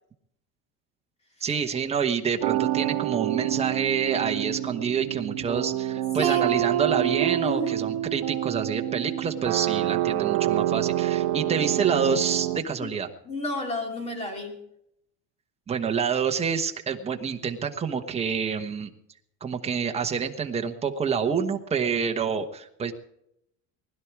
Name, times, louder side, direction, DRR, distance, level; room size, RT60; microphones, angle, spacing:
voice 1, 1.4-13.1 15.7-18.9 19.4-22.9, right 6 dB, 20° right, 5 dB, 1.2 m, -27 dB
sound 1, 2.4-12.6, right 13 dB, 80° right, 1.1 m, -27 dB
voice 2, 6.1-6.5 7.4-7.8 12.8-12.9 13.2-14.6, left 2 dB, 20° left, 3 dB, 2.7 m, -32 dB
20.5 x 12.0 x 4.7 m, 0.75 s
cardioid pair, 165°, 33 cm